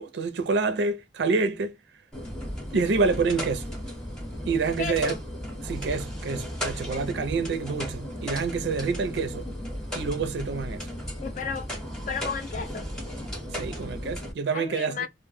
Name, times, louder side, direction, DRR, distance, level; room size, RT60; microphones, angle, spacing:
voice 1, 0.0-1.7 2.7-3.7 4.5-5.1 5.6-9.5 9.9-10.9 13.5-15.1, right 4 dB, 75° right, 0.4 m, -27 dB
sound 1, 2.1-14.3, equal, 5° left, 0.8 m, -35 dB
voice 2, 4.8-5.2 11.2-11.7 12.1-12.9 14.5-15.1, left 5 dB, 45° left, 0.3 m, -33 dB
2.1 x 2.0 x 3.1 m
head